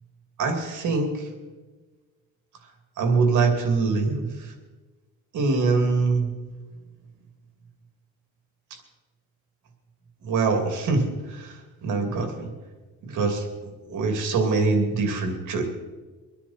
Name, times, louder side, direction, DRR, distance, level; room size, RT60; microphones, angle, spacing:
voice 1, 0.4-1.1 3.0-4.3 5.3-6.3 10.2-11.5 11.8-12.5 13.0-13.4 13.8-15.6, right 4 dB, 80° right, 4 dB, 2.8 m, -23 dB
24.5 x 10.0 x 4.4 m, 1.3 s
cardioid pair, 90°, 30 cm